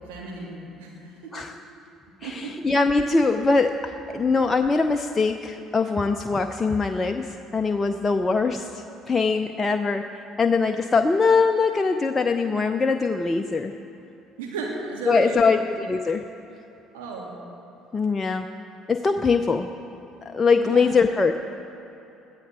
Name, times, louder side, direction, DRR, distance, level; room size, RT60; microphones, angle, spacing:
voice 1, 0.0-1.3 2.2-2.6 4.1-4.3 14.4-15.5 16.9-17.3 20.6-20.9, right 3 dB, 70° right, -2 dB, 2.9 m, -35 dB
voice 2, 2.2-10.0 10.4-13.7 15.1-16.2 17.9-18.5 18.9-19.7 20.3-21.4, left 4 dB, 25° left, 6 dB, 0.6 m, -22 dB
21.5 x 14.0 x 3.8 m, 3.0 s
figure-of-eight pair, 55°, 0 cm